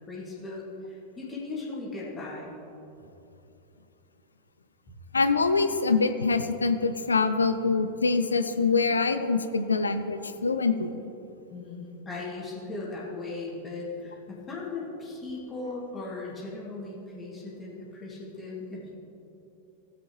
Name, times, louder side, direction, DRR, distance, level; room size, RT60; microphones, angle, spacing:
voice 1, 0.1-2.5 11.5-19.0, left 3 dB, 20° left, -5 dB, 2.2 m, -38 dB
voice 2, 5.1-10.9, left 4 dB, 75° left, 10 dB, 0.5 m, -24 dB
16.5 x 7.7 x 3.1 m, 2.8 s
figure-of-eight pair, 90°, 0 cm